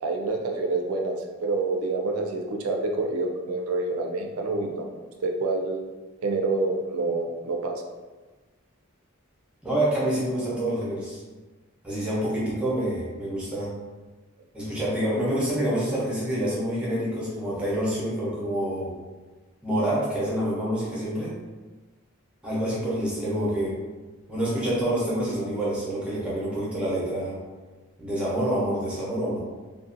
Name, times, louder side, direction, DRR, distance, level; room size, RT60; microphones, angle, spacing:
voice 1, 0.0-4.9 5.2-5.8 6.2-7.8, right 3 dB, 85° right, 2 dB, 0.4 m, -27 dB
voice 2, 9.6-11.2 11.8-13.7 14.5-18.9 19.6-21.4 22.4-23.8 24.3-27.4 28.0-29.4, right 1 dB, 5° right, -7 dB, 0.6 m, -27 dB
2.5 x 2.1 x 2.5 m, 1.3 s
head